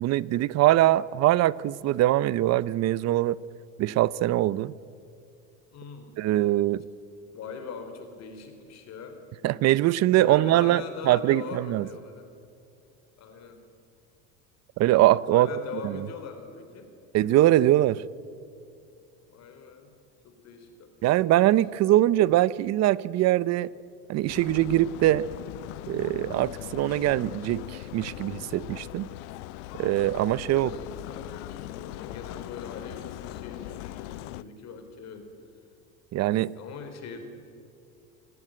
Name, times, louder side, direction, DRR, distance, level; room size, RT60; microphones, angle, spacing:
voice 1, 0.0-3.4 3.8-4.7 6.2-6.8 9.4-11.9 14.8-15.5 15.8-16.0 17.1-18.0 21.0-23.7 24.1-25.3 25.9-29.1 29.8-30.7 36.1-36.5, right 15 dB, 45° right, 20 dB, 0.7 m, -22 dB
voice 2, 5.7-6.1 7.3-9.2 10.2-12.3 13.2-13.6 15.3-16.9 19.3-19.9 20.2-21.4 30.5-35.3 36.5-37.2, left 5 dB, 45° left, 6 dB, 4.1 m, -41 dB
sound 1, 24.3-34.4, left 16 dB, 80° left, 0.7 m, -40 dB
26.5 x 16.5 x 9.0 m, 2.5 s
supercardioid pair, 115°, 35 cm